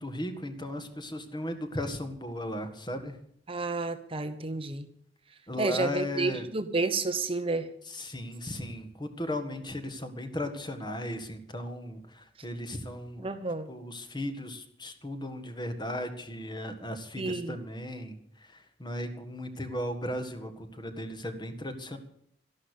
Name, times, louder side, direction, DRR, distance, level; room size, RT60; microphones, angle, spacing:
voice 1, 0.0-3.2 5.5-6.5 7.9-13.3 13.7-22.0, left 1 dB, 25° left, 7 dB, 1.8 m, -36 dB
voice 2, 3.5-4.9 5.6-7.7 13.2-13.7 17.2-17.6, right 3 dB, 30° right, 9 dB, 1.0 m, -30 dB
13.0 x 11.5 x 8.4 m, 0.67 s
head